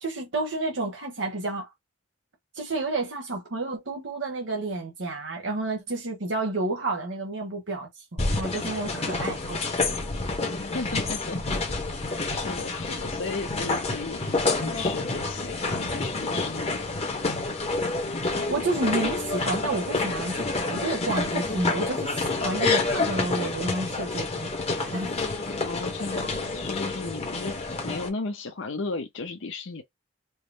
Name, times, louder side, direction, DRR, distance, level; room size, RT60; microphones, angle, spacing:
voice 1, 0.0-1.7 2.5-9.7 18.4-25.1, right 2 dB, 75° right, 1.1 m, -30 dB
sound 1, 8.2-28.1, left 3 dB, 35° left, 1.0 m, -28 dB
voice 2, 10.5-11.6 11.9-17.0 25.6-29.8, left 3 dB, 80° left, 0.7 m, -35 dB
4.7 x 2.0 x 3.3 m
head